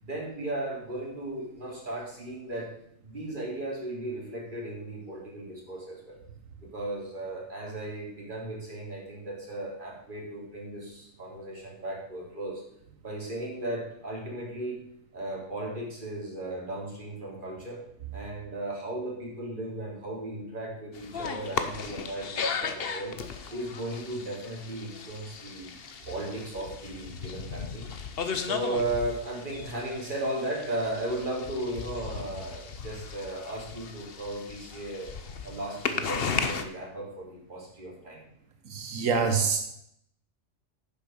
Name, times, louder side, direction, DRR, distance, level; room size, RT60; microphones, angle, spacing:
voice 1, 0.0-2.7 3.0-6.2 6.6-12.6 13.0-14.8 15.1-17.8 18.1-23.2 23.5-25.8 26.1-27.9 28.4-35.1 35.4-38.2, right 1 dB, 40° right, -4 dB, 3.6 m, -36 dB
sound 1, 20.9-36.6, left 5 dB, 50° left, 1.0 m, -36 dB
voice 2, 38.7-39.7, right 5 dB, 80° right, 7 dB, 1.4 m, -26 dB
9.9 x 7.2 x 6.5 m, 0.72 s
omnidirectional pair, 1.4 m